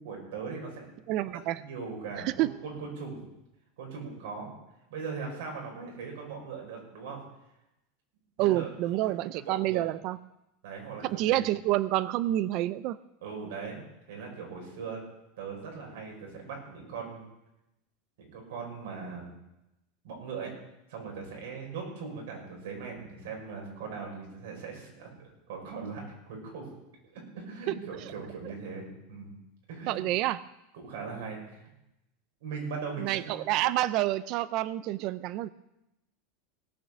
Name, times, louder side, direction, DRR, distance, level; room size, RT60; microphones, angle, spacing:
voice 1, 0.0-0.9 1.6-3.3 3.8-4.5 4.9-7.2 8.4-8.7 9.3-9.9 10.6-11.4 13.2-15.0 15.4-17.2 18.3-19.3 20.0-20.5 20.9-26.7 27.1-29.3 29.7-29.9 30.7-31.6 32.4-33.4, right 5 dB, 80° right, 0 dB, 5.9 m, -39 dB
voice 2, 1.1-1.6 2.2-2.5 8.4-10.2 11.0-13.0 27.7-27.8 29.9-30.4 33.0-35.5, right 15 dB, 50° right, 17 dB, 0.5 m, -28 dB
17.5 x 6.4 x 7.0 m, 0.89 s
supercardioid pair, 130°, 0 cm